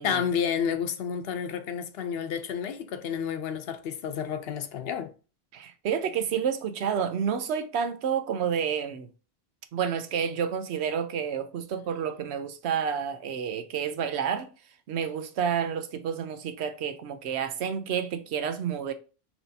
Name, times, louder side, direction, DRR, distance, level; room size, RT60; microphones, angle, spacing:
voice 1, 0.0-5.1, left 7 dB, 70° left, 0.8 m, -30 dB
voice 2, 5.5-9.1 9.7-14.5 14.9-18.9, right 7 dB, 85° right, 0.9 m, -29 dB
6.0 x 2.8 x 2.7 m
omnidirectional pair, 1.1 m